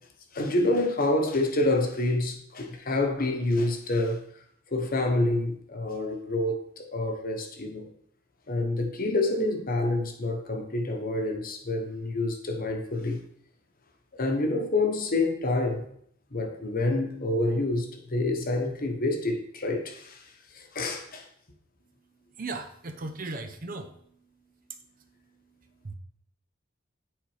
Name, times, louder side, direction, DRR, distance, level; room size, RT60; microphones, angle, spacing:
voice 1, 0.3-4.2 4.7-7.9 8.5-13.2 14.1-15.8 16.3-20.3 20.5-21.3, left 2 dB, 45° left, 1.1 m, -27 dB
voice 2, 22.4-23.9 25.8-25.9, right 3 dB, 45° right, 0.7 m, -36 dB
8.8 x 4.1 x 4.9 m
head